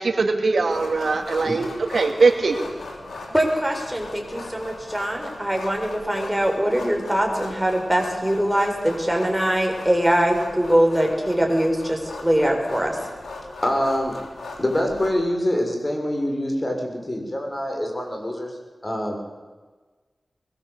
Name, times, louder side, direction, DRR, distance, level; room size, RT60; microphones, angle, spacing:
voice 1, 0.0-2.6, right 4 dB, 75° right, 5 dB, 2.6 m, -21 dB
sound 1, 0.7-15.1, left 3 dB, 85° left, 5.4 m, -38 dB
voice 2, 3.3-13.0, right 1 dB, 10° right, 2 dB, 6.9 m, -22 dB
voice 3, 13.6-14.2 14.6-18.5 18.8-19.2, left 1 dB, 30° left, 2 dB, 6.8 m, -25 dB
23.0 x 21.0 x 8.4 m, 1.4 s
cardioid pair, 45°, 0 cm